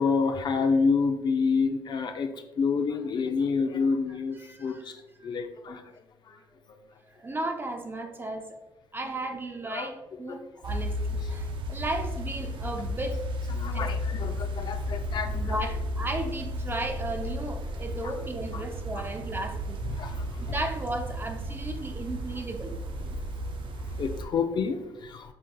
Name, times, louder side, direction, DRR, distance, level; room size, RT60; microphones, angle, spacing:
voice 1, 0.0-2.3 2.6-5.9 6.3-6.4 9.7-9.9 10.3-10.4 13.5-15.6 18.0-18.1 18.5-18.6 18.9-19.0 19.8-20.5 23.9-25.3, left 5 dB, 55° left, 6 dB, 0.5 m, -28 dB
voice 2, 4.4-4.8 5.2-5.3 7.1-8.6 8.9-13.2 13.7-13.9 15.3-19.8 20.5-22.7, right 1 dB, 25° right, 5 dB, 0.7 m, -35 dB
sound 1, 10.6-24.3, equal, 65° right, 0.4 m, -33 dB
5.2 x 3.7 x 2.3 m, 0.99 s
cardioid pair, 70°, 9 cm